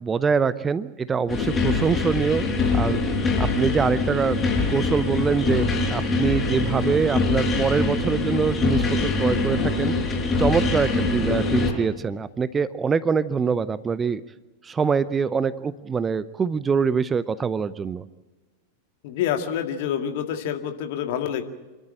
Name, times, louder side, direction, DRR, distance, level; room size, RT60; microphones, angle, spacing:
voice 1, 0.0-3.0 3.4-4.4 4.7-5.7 5.9-9.9 10.4-14.2 14.6-18.0, right 5 dB, 20° right, 16 dB, 0.6 m, -24 dB
sound 1, 1.3-11.7, left 3 dB, 25° left, 5.9 m, -23 dB
voice 2, 19.0-21.4, left 9 dB, 50° left, 7 dB, 2.0 m, -27 dB
27.5 x 13.0 x 8.8 m, 1.2 s
figure-of-eight pair, 90°, 0 cm